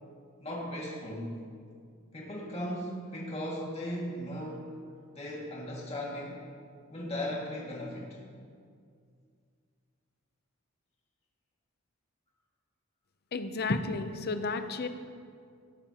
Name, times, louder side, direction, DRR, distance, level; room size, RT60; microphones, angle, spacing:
voice 1, 0.4-1.3 2.1-4.7 5.2-6.4 6.9-8.2, left 1 dB, 30° left, -4 dB, 2.1 m, -37 dB
voice 2, 13.3-14.9, left 3 dB, 50° left, 9 dB, 0.6 m, -32 dB
15.5 x 12.0 x 2.9 m, 2.2 s
head